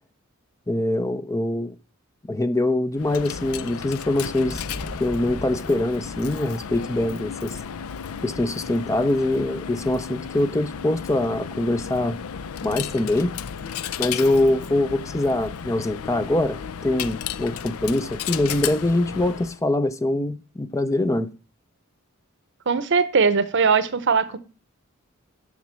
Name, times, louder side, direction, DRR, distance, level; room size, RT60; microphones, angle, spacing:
voice 1, 0.7-1.7 2.3-4.7 5.0-7.6 8.2-12.2 12.6-13.4 14.0-21.3, left 1 dB, 15° left, 0.4 m, -23 dB
Coin (dropping), 2.9-19.6, left 7 dB, 85° left, 0.5 m, -34 dB
sound 1, 4.4-9.3, left 1 dB, 60° left, 1.2 m, -39 dB
voice 2, 22.7-24.4, right 5 dB, 55° right, 0.7 m, -20 dB
7.3 x 6.1 x 7.4 m
head